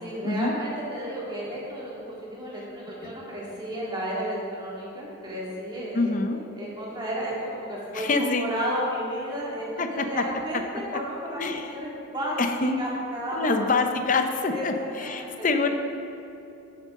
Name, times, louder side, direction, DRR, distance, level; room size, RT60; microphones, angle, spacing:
voice 1, 0.0-6.2 6.5-8.1 8.4-13.8 14.5-15.5, equal, 20° right, -6 dB, 2.2 m, -33 dB
voice 2, 5.9-6.4 7.9-8.5 9.8-10.2 11.4-11.7 12.4-12.8 13.3-15.7, left 3 dB, 40° left, 6 dB, 0.6 m, -26 dB
10.0 x 9.2 x 3.7 m, 2.9 s
head